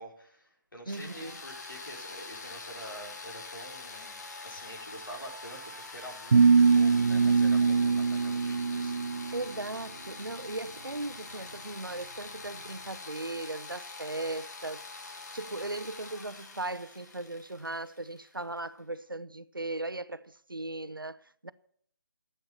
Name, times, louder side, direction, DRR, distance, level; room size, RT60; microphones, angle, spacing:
voice 1, 0.0-9.3, right 1 dB, 80° left, 4.9 m, -47 dB
sound 1, 0.9-18.6, left 3 dB, 55° left, 2.1 m, -45 dB
voice 2, 0.9-1.4 9.3-14.8 15.3-21.5, right 2 dB, 90° right, 0.8 m, -38 dB
sound 2, 6.3-9.4, right 5 dB, 55° right, 0.4 m, -23 dB
11.0 x 8.7 x 8.6 m
figure-of-eight pair, 150°, 11 cm